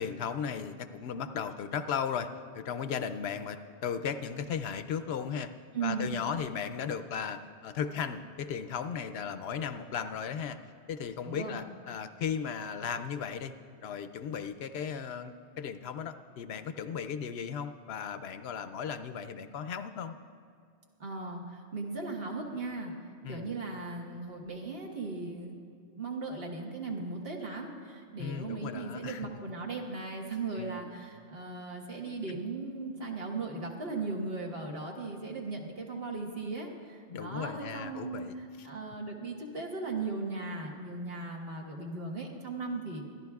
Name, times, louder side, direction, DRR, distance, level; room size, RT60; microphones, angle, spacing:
voice 1, 0.0-2.3 2.5-5.5 5.8-10.6 10.9-13.5 13.8-20.1 23.2-23.5 28.2-29.3 30.6-30.8 37.1-38.7, left 7 dB, 70° left, 11 dB, 0.8 m, -36 dB
voice 2, 5.7-6.1 11.2-11.6 21.0-22.9 23.3-25.6 26.0-43.0, right 3 dB, 60° right, 0 dB, 1.6 m, -37 dB
25.0 x 11.0 x 2.3 m, 2.3 s
omnidirectional pair, 1.1 m